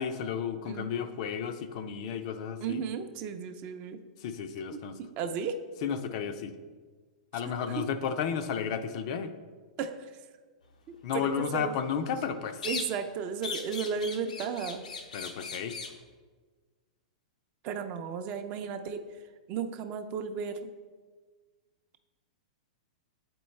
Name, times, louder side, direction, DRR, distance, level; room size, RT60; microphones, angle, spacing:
voice 1, 0.0-2.8 4.2-5.0 5.8-6.5 7.3-9.3 11.0-12.6 15.1-15.8, left 7 dB, 55° left, 9 dB, 0.5 m, -33 dB
voice 2, 2.6-4.0 4.7-4.8 5.2-5.6 7.8-7.9 9.8-10.1 10.9-11.7 12.6-14.8 17.6-19.0 19.5-20.6, right 6 dB, 40° right, 8 dB, 0.5 m, -34 dB
sound 1, 12.6-13.1 13.4-16.0, left 4 dB, 85° left, 0.7 m, -38 dB
7.8 x 4.5 x 3.2 m, 1.4 s
hypercardioid pair, 130°, 4 cm